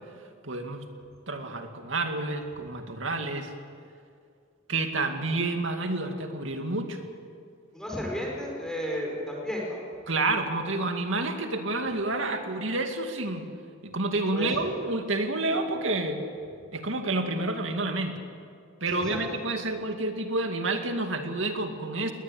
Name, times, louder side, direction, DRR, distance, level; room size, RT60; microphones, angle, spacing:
voice 1, 0.4-0.9 1.3-3.5 4.7-7.0 10.1-13.5 13.8-16.2 16.7-18.1 18.8-22.1, right 2 dB, 70° right, 5 dB, 2.4 m, -29 dB
voice 2, 7.7-9.8 14.3-14.5 18.9-19.2, equal, 5° left, -2 dB, 4.7 m, -33 dB
21.0 x 19.0 x 8.8 m, 2.3 s
head